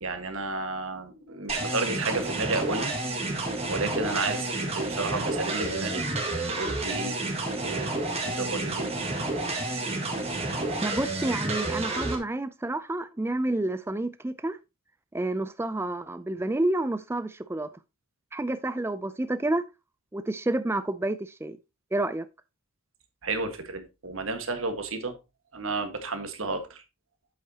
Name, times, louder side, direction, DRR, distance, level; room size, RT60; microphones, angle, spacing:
voice 1, 0.0-2.9 3.4-6.0 6.6-7.2 7.6-7.9 8.2-8.9 23.2-25.2 25.5-26.8, right 3 dB, 65° right, 1.6 m, -32 dB
sound 1, 1.5-12.2, right 2 dB, 30° right, 1.9 m, -30 dB
voice 2, 10.8-14.6 15.1-17.7 18.3-19.6 20.1-21.6 21.9-22.3, right 2 dB, 10° right, 0.3 m, -29 dB
8.1 x 7.9 x 2.8 m
head